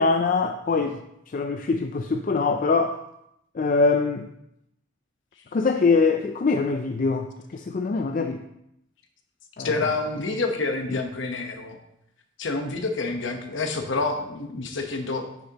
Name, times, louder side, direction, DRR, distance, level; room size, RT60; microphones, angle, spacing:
voice 1, 0.0-3.0 3.5-4.3 5.5-8.4 9.6-9.9 10.9-11.0, left 4 dB, 40° left, 5 dB, 0.3 m, -23 dB
voice 2, 9.6-11.8 12.4-15.3, left 3 dB, 60° left, 5 dB, 1.0 m, -28 dB
9.6 x 6.7 x 2.9 m, 0.81 s
head